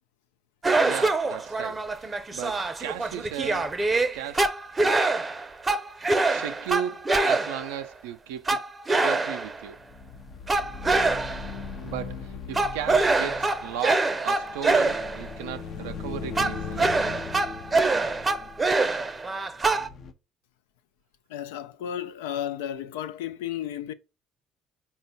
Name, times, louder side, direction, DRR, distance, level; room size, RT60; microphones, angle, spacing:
sound 1, 0.6-7.8 8.5-9.7 10.5-11.6 12.5-15.3 16.4-19.9, right 3 dB, 25° right, 0.5 m, -25 dB
voice 1, 0.8-3.7 4.1-4.5 4.8-5.0 6.3-8.6 8.9-9.8 11.8-16.9, right 10 dB, 90° right, 0.3 m, -36 dB
sound 2, 9.8-20.1, left 5 dB, 55° left, 0.6 m, -39 dB
voice 2, 21.3-23.9, left 10 dB, 90° left, 0.3 m, -33 dB
4.3 x 2.2 x 3.8 m
supercardioid pair, 70°, 0 cm